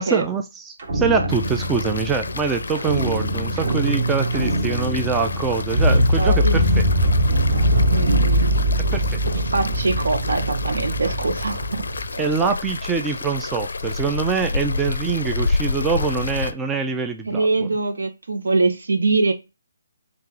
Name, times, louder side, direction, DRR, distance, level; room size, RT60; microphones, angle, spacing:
voice 1, 0.0-7.1 8.9-9.2 12.2-17.5, right 5 dB, 10° right, 0.3 m, -24 dB
sound 1, 0.8-12.1, equal, 45° right, 1.4 m, -22 dB
sound 2, 1.3-16.5, left 3 dB, 80° left, 0.4 m, -30 dB
voice 2, 5.8-6.6 7.9-8.7 9.4-12.2 17.2-19.3, right 3 dB, 80° right, 1.2 m, -23 dB
3.7 x 2.9 x 4.6 m
hypercardioid pair, 170°, 0 cm